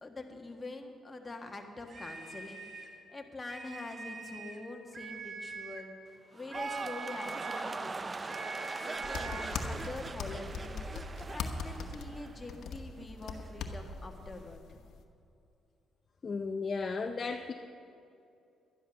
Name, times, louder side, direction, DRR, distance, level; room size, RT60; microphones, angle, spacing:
voice 1, 0.0-2.7 3.1-8.4 8.9-10.8 11.3-14.8, left 2 dB, 20° left, 3 dB, 1.5 m, -45 dB
sound 1, 1.9-3.0 3.4-4.7 4.9-5.9 6.5-7.7 8.3-9.6, right 4 dB, 45° right, 1.5 m, -44 dB
sound 2, 6.3-12.7 13.0-13.5, right 3 dB, 30° right, 0.4 m, -41 dB
sound 3, 9.0-15.0, left 4 dB, 75° left, 1.0 m, -40 dB
voice 2, 16.2-17.5, left 4 dB, 40° left, 6 dB, 0.5 m, -34 dB
11.5 x 11.0 x 6.2 m, 2.6 s
cardioid pair, 90°, 0 cm